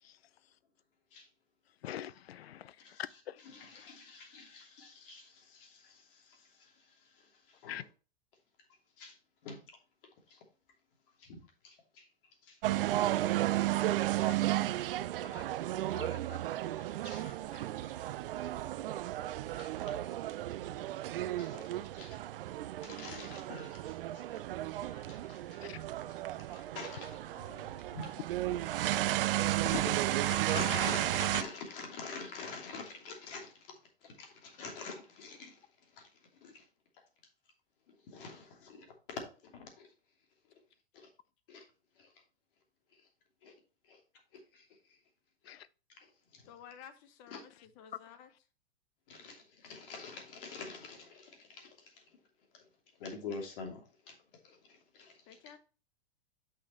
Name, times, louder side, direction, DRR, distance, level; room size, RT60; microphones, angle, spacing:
voice 1, 1.8-4.0 7.7-7.9 14.2-14.4 15.2-15.4 15.9-17.0 25.6-25.8 32.6-32.7 45.5-45.7 47.9-48.2, left 11 dB, 80° left, 0.6 m, -46 dB
voice 2, 3.5-7.8 9.0-9.2 9.4-9.8 10.3-10.4 11.2-12.1 12.4-12.8 13.4-13.7 14.1-14.2 14.8-14.9 15.2-15.5 16.8-17.9 19.6-20.1 20.7-22.3 22.8-24.4 24.8-25.6 26.5-28.2 28.5-28.6 29.1-35.7 35.9-36.1 36.4-36.6 37.9-39.9 40.9-41.1 41.5-41.6 42.0-42.1 42.9-43.0 43.4-43.5 43.9-44.0 44.3-45.0 45.4-45.5 46.0-46.5 47.3-47.4 49.1-52.0 52.5-52.6 53.0-54.2 54.4-55.4, left 4 dB, 60° left, 3.0 m, -47 dB
sound 1, 12.6-31.4, right 14 dB, 65° right, 0.6 m, -33 dB
voice 3, 46.4-48.3 55.3-55.6, left 8 dB, 45° left, 1.2 m, -53 dB
8.6 x 5.9 x 3.1 m
hypercardioid pair, 110°, 30 cm